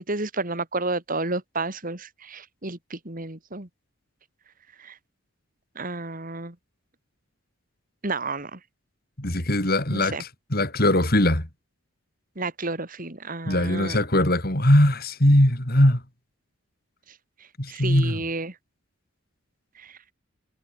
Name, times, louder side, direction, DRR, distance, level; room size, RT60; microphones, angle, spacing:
voice 1, 0.0-3.7 4.8-5.0 5.7-6.6 8.0-8.6 9.9-10.2 12.4-14.0 17.7-18.5 19.8-20.0, right 3 dB, 40° right, 2.7 m, -31 dB
voice 2, 9.2-11.5 13.5-16.0 17.6-18.2, left 1 dB, 45° left, 4.4 m, -20 dB
head